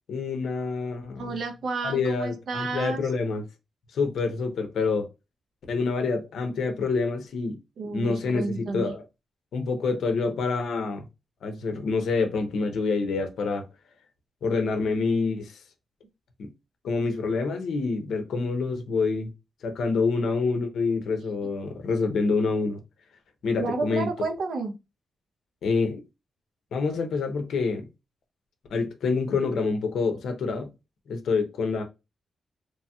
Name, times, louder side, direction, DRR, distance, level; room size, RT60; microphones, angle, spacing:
voice 1, 0.1-1.3 1.8-3.4 3.9-5.1 5.7-7.6 7.8-9.0 9.5-11.0 11.4-13.7 14.4-15.6 16.4-16.5 16.8-19.3 19.6-22.8 23.4-24.1 25.6-26.0 26.7-27.9 28.7-30.7 31.1-31.8, left 4 dB, 85° left, 0.6 m, -27 dB
voice 2, 1.2-3.1 7.8-8.9 23.6-24.7, right 3 dB, 75° right, 0.7 m, -31 dB
3.0 x 2.8 x 2.3 m
cardioid pair, 105°, 0 cm